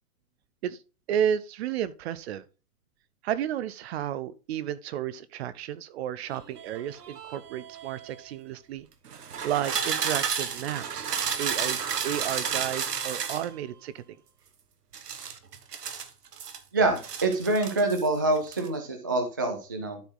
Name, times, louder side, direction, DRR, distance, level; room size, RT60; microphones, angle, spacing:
voice 1, 1.1-2.4 3.2-8.9 9.4-11.1 11.4-14.2, right 10 dB, 45° right, 0.8 m, -32 dB
sound 1, 6.3-8.2 9.1-13.5 14.9-16.6 17.0-18.1 18.4-18.7, right 7 dB, 85° right, 1.4 m, -32 dB
voice 2, 16.7-20.0, right 2 dB, 15° right, 0.3 m, -26 dB
11.5 x 4.4 x 3.8 m
hypercardioid pair, 130°, 46 cm